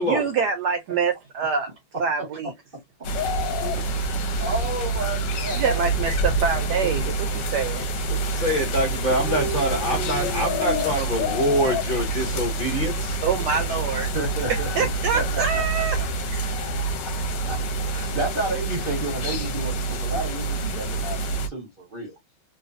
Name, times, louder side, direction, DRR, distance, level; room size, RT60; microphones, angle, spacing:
voice 1, 0.0-1.7 2.0-2.5 5.6-7.1 7.5-7.9 13.2-14.1 14.8-16.0 16.3-16.4, right 5 dB, 75° right, 1.0 m, -25 dB
sound 1, 3.0-21.5, right 2 dB, 70° left, 1.3 m, -27 dB
voice 2, 3.7-5.7 6.8-7.2 8.1-8.2 9.1-10.9 13.9-16.1 17.4-17.6 17.9-21.2 21.5-22.2, right 2 dB, 45° right, 0.7 m, -32 dB
voice 3, 8.3-13.2, equal, 40° left, 0.8 m, -25 dB
3.2 x 2.2 x 2.5 m
omnidirectional pair, 2.2 m